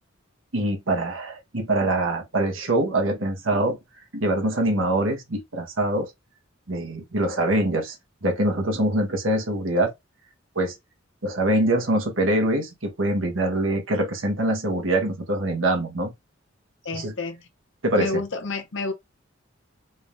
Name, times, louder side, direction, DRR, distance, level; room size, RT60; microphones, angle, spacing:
voice 1, 0.5-3.8 4.1-6.1 6.7-7.9 8.2-9.9 10.5-10.8 11.2-16.1 16.9-17.1 17.8-18.2, right 1 dB, 85° right, 1.5 m, -24 dB
voice 2, 16.8-17.5 17.9-18.9, left 3 dB, 65° left, 0.8 m, -29 dB
4.0 x 3.5 x 2.7 m
head